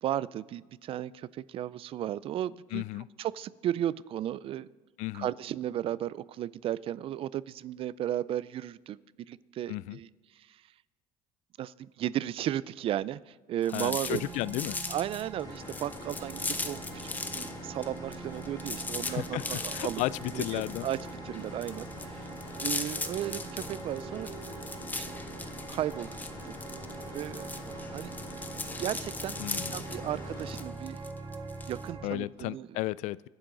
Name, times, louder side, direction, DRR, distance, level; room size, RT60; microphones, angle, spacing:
voice 1, 0.0-2.8 3.2-4.7 5.1-9.0 9.3-10.6 11.6-14.3 14.9-20.0 20.3-21.0 21.2-22.3 22.6-24.3 25.7-26.1 26.4-26.5 27.1-27.5 27.9-28.1 28.8-31.0 31.7-32.8, right 12 dB, 45° right, 19 dB, 0.4 m, -35 dB
voice 2, 2.7-3.1 5.0-5.3 9.7-10.0 13.7-14.8 19.1-20.9 29.4-29.8 32.0-33.3, left 18 dB, 65° left, 21 dB, 0.4 m, -34 dB
sound 1, 13.6-17.6 17.8-31.9, left 3 dB, 15° left, 0.9 m, -39 dB
sound 2, 14.0-32.1, right 4 dB, 30° right, 2.0 m, -44 dB
sound 3, 15.4-30.6, left 2 dB, 30° left, 3.3 m, -45 dB
25.0 x 10.5 x 3.9 m, 1.3 s
cardioid pair, 115°, 13 cm